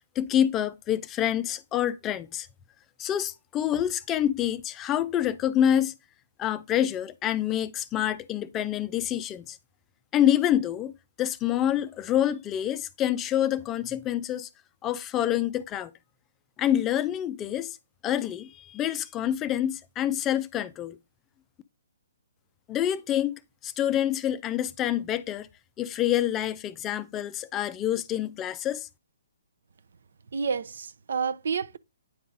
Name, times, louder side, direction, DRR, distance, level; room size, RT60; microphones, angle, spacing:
voice 1, 0.2-2.5 3.0-5.9 6.4-9.6 10.1-10.9 11.2-14.5 14.8-15.9 16.6-17.8 18.0-21.0 22.7-25.5 25.8-28.9, left 11 dB, 20° left, 0.4 m, -27 dB
voice 2, 30.3-31.8, right 6 dB, 70° right, 0.5 m, -29 dB
9.4 x 3.8 x 3.8 m
hypercardioid pair, 145°, 0 cm